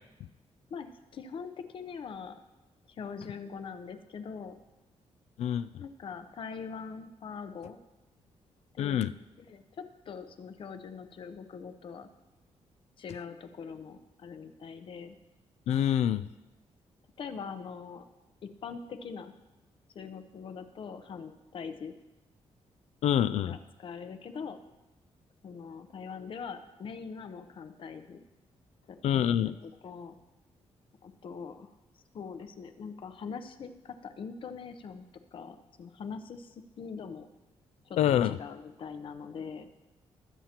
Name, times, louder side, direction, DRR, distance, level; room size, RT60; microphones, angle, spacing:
voice 1, 0.7-2.3 3.0-4.6 5.8-7.8 8.7-9.0 9.4-12.1 13.0-15.2 17.2-18.0 18.4-19.3 19.9-21.9 23.4-24.6 25.4-28.2 28.9-30.1 31.0-31.7 32.1-35.0 35.3-37.3 37.9-39.7, left 6 dB, 50° left, 9 dB, 0.8 m, -42 dB
voice 2, 8.8-9.1 15.7-16.2 23.0-23.6 29.0-29.5 38.0-38.4, left 10 dB, 75° left, 13 dB, 0.4 m, -26 dB
21.0 x 7.4 x 2.9 m, 1.0 s
wide cardioid pair, 150°, 11 cm